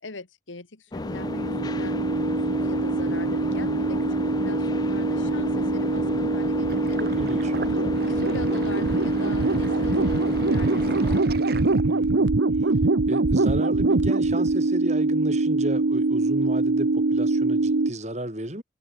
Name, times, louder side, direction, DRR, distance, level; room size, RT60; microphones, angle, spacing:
voice 1, 0.0-7.0 7.6-11.7, left 3 dB, 85° left, 1.8 m, -41 dB
sound 1, 0.9-11.2, left 2 dB, 20° left, 0.3 m, -32 dB
sound 2, 1.0-17.9, right 3 dB, 75° right, 0.8 m, -23 dB
Sink (filling or washing), 6.7-12.3, right 3 dB, 55° right, 1.1 m, -40 dB
voice 2, 7.0-7.5 11.8-12.3 13.1-18.6, right 1 dB, 35° right, 3.2 m, -33 dB
head